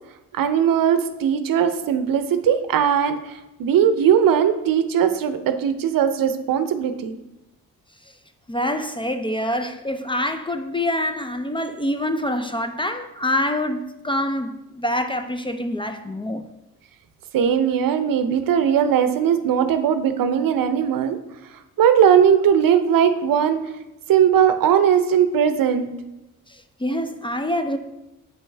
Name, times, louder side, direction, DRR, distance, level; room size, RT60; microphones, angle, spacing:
voice 1, 0.3-3.2 3.6-7.2 17.3-21.2 21.8-23.6 24.1-25.9, right 8 dB, 65° right, 0.6 m, -19 dB
voice 2, 8.5-16.4 26.5-27.8, left 1 dB, 15° left, 0.4 m, -26 dB
7.5 x 5.3 x 3.3 m
supercardioid pair, 60°, 36 cm